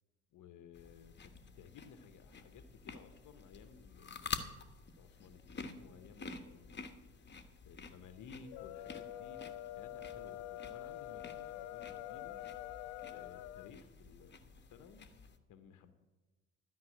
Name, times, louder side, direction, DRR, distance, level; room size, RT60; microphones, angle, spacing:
voice 1, 0.3-4.5 5.0-6.8 7.6-12.4 13.1-15.1 15.5-15.9, left 6 dB, 60° left, 9 dB, 1.1 m, -57 dB
sound 1, 0.7-15.4, left 5 dB, 30° left, 1.3 m, -49 dB
sound 2, 8.4-13.7, left 13 dB, 75° left, 0.5 m, -46 dB
12.5 x 5.7 x 8.5 m, 1.2 s
hypercardioid pair, 55°, 34 cm